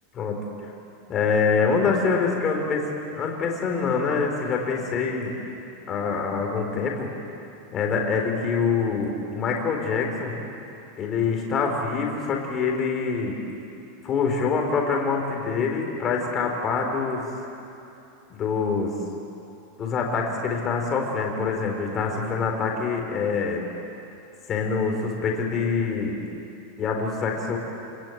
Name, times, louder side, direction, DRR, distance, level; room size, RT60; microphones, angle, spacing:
voice 1, 1.1-5.3 5.9-7.1 7.7-10.4 11.0-13.4 14.0-17.2 18.3-18.9 19.8-23.6 24.5-26.2 26.8-27.6, left 5 dB, 20° left, 1 dB, 3.9 m, -25 dB
29.0 x 22.0 x 9.2 m, 2.8 s
supercardioid pair, 175°, 0 cm